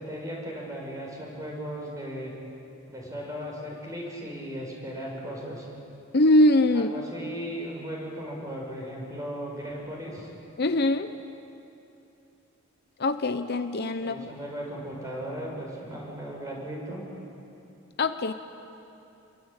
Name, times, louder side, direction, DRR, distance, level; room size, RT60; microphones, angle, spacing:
voice 1, 0.0-2.3 2.9-5.7 6.7-10.3 14.0-17.1, equal, 15° right, -2 dB, 6.7 m, -37 dB
voice 2, 6.1-6.9 10.6-11.1 13.0-14.3 18.0-18.3, left 1 dB, 55° left, 9 dB, 0.8 m, -22 dB
28.0 x 22.5 x 9.0 m, 2.8 s
head